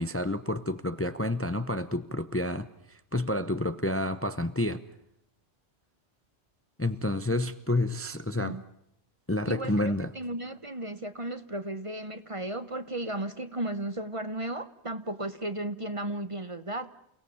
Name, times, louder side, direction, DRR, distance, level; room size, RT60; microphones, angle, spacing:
voice 1, 0.0-4.8 6.8-8.6 9.3-10.1, left 1 dB, 15° left, 11 dB, 0.8 m, -29 dB
voice 2, 9.5-16.9, right 1 dB, 30° right, 11 dB, 1.1 m, -35 dB
29.5 x 18.0 x 7.1 m, 0.79 s
omnidirectional pair, 1.1 m